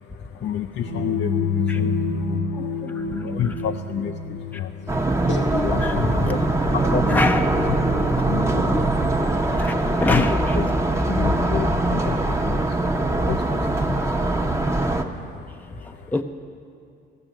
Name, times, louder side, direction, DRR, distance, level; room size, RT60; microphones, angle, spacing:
voice 1, 0.0-7.2 7.6-10.2 10.5-16.1, left 8 dB, 65° left, 0.5 m, -32 dB
sound 1, 0.8-10.7, left 4 dB, 80° left, 1.4 m, -29 dB
voice 2, 2.5-3.5 4.5-4.6 5.8-6.3 6.6-6.8 7.1-7.6 8.2-8.3 9.5-10.6 15.8-16.2, left 2 dB, 10° left, 0.6 m, -27 dB
sound 2, 4.9-15.0, right 2 dB, 15° right, 0.9 m, -22 dB
15.5 x 6.0 x 9.0 m
cardioid pair, 90°, 20 cm